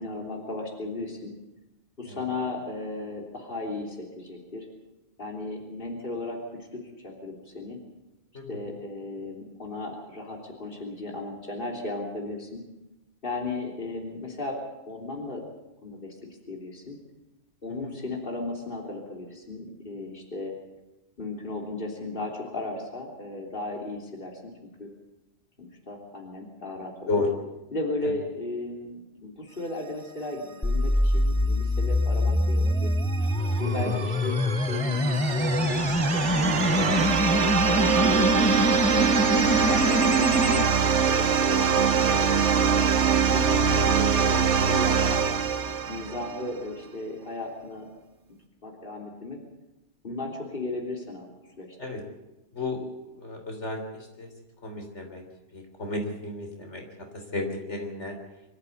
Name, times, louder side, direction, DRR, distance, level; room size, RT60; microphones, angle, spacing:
voice 1, 0.0-1.3 2.0-4.7 5.2-6.4 6.7-7.8 8.5-12.6 13.2-14.6 14.9-15.5 15.8-16.2 16.5-17.0 17.6-20.6 21.2-24.5 24.8-24.9 25.6-27.2 27.7-32.9 33.6-37.0 37.7-38.8 39.7-40.6 41.1-45.2 45.9-47.9 48.6-49.4 50.0-51.3 51.6-51.8, left 2 dB, 50° left, 0 dB, 3.5 m, -35 dB
sound 1, 30.6-40.6, left 1 dB, 10° left, 0.3 m, -25 dB
sound 2, 32.7-46.5, right 6 dB, 80° right, 1.4 m, -24 dB
voice 2, 38.9-39.5 51.8-52.0 52.5-52.8 53.1-54.3 54.6-55.2 55.5-56.8 57.1-58.2, left 2 dB, 75° left, 3 dB, 3.8 m, -33 dB
25.0 x 14.0 x 8.2 m, 0.99 s
omnidirectional pair, 1.2 m